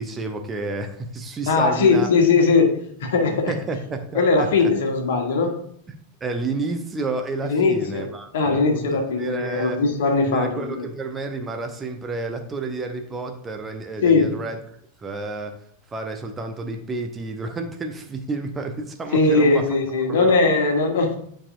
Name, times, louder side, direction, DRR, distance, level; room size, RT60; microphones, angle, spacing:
voice 1, 0.0-2.1 3.5-4.7 6.2-8.9 9.1-9.8 10.2-14.6 15.0-15.6 15.9-19.6 20.1-20.4, right 3 dB, 20° right, 5 dB, 0.7 m, -30 dB
voice 2, 1.5-3.5 4.1-5.5 7.4-8.1 8.3-10.9 14.0-14.3 19.1-21.2, left 4 dB, 60° left, 3 dB, 1.4 m, -19 dB
9.8 x 4.9 x 2.6 m, 0.65 s
figure-of-eight pair, 90°, 0 cm